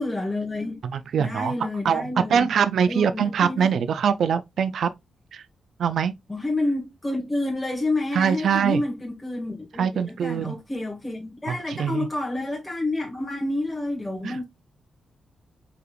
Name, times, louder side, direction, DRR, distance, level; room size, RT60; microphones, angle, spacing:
voice 1, 0.0-0.8 1.2-2.5 2.9-3.7 6.3-14.4, left 2 dB, 10° left, 1.2 m, -29 dB
voice 2, 0.8-1.5 1.8-4.9 5.3-5.4 5.8-6.1 8.1-8.8 9.8-10.5 11.5-12.1 14.2-14.4, right 7 dB, 70° right, 0.3 m, -23 dB
4.7 x 3.3 x 2.3 m
cardioid pair, 110°, 0 cm